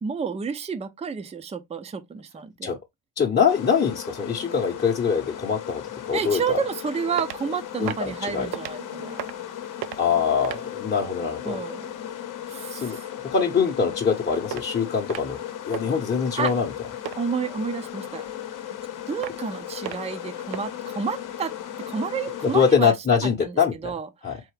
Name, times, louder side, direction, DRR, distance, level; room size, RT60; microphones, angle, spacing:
voice 1, 0.0-2.7 6.1-9.3 11.4-11.9 12.5-13.1 16.4-16.5 17.2-18.3 19.1-21.5 21.9-22.9 23.2-24.4, right 6 dB, 15° right, 0.5 m, -30 dB
voice 2, 3.2-6.6 7.8-8.5 10.0-11.6 12.7-13.0 13.2-15.4 15.7-16.7 22.4-23.9 24.2-24.4, left 6 dB, 25° left, 0.9 m, -23 dB
sound 1, 3.5-22.7, left 10 dB, 50° left, 0.9 m, -36 dB
sound 2, 7.2-7.5 7.8-8.1 8.5-8.8 9.1-9.5 9.8-10.1 10.4-10.7 14.5-14.7 15.1-15.4 15.7-15.9 16.4-16.7 17.1-17.2 19.2-19.5 19.9-20.1 20.5-20.6, right 14 dB, 65° right, 0.5 m, -34 dB
4.0 x 3.5 x 3.3 m
cardioid pair, 100°, 40 cm